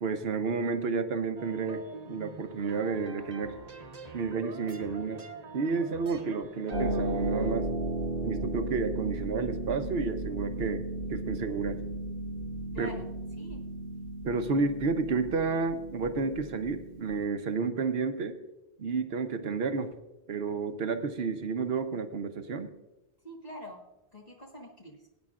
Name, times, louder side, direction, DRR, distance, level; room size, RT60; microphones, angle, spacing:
voice 1, 0.0-3.6 4.1-5.2 5.5-7.7 8.2-10.8 11.1-11.8 12.8-12.9 14.2-18.4 18.8-19.9 20.3-22.7, right 4 dB, 70° right, 8 dB, 1.1 m, -31 dB
sound 1, 1.4-7.5, right 3 dB, 40° right, 1.0 m, -46 dB
Harp, 6.7-17.3, right 2 dB, 85° right, 1.3 m, -35 dB
voice 2, 12.7-13.6 23.2-23.8 24.1-25.0, equal, 40° left, -2 dB, 1.6 m, -45 dB
19.5 x 9.6 x 2.4 m, 0.99 s
omnidirectional pair, 1.1 m